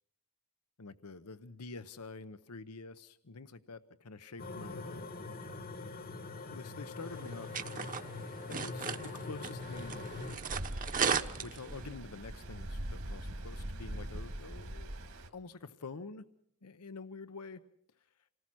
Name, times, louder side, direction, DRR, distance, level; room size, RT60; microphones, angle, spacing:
voice 1, 0.8-5.1 6.5-10.0 11.2-16.2 16.6-17.6, left 3 dB, 85° left, 11 dB, 0.9 m, -47 dB
sound 1, 4.4-10.4, left 3 dB, 45° left, 1.3 m, -43 dB
sound 2, 7.0-12.0, right 6 dB, 40° right, 1.1 m, -37 dB
Stream, 9.6-15.3, right 1 dB, 65° right, 2.3 m, -42 dB
28.0 x 19.0 x 6.2 m, 0.67 s
head